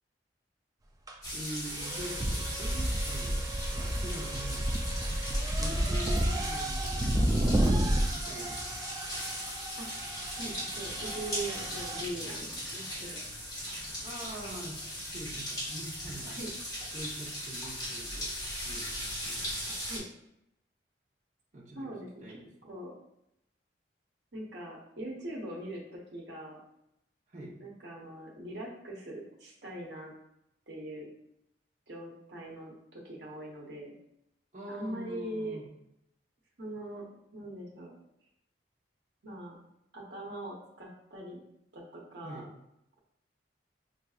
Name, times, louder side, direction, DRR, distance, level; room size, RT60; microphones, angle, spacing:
sound 1, 1.1-1.2 1.7-12.0, right 1 dB, 20° right, 0.4 m, -31 dB
sound 2, 1.2-20.0, equal, 20° left, 1.4 m, -39 dB
voice 1, 1.3-3.4 3.7-4.7 5.6-7.7 8.1-8.8 14.0-14.8 15.1-16.4 16.9-18.3 18.6-19.5 21.5-21.9 22.2-22.5 27.3-27.5 34.5-35.7 42.2-42.5, right 1 dB, 45° right, -5 dB, 0.9 m, -44 dB
voice 2, 10.4-13.2 16.3-16.5 19.9-20.1 21.7-22.9 24.3-26.6 27.6-30.1 30.7-31.1 31.9-33.9 34.7-35.6 36.6-37.9 39.2-39.6 39.9-41.4 41.7-42.5, right 1 dB, 75° right, -3 dB, 0.9 m, -41 dB
5.6 x 2.6 x 2.4 m, 0.80 s
head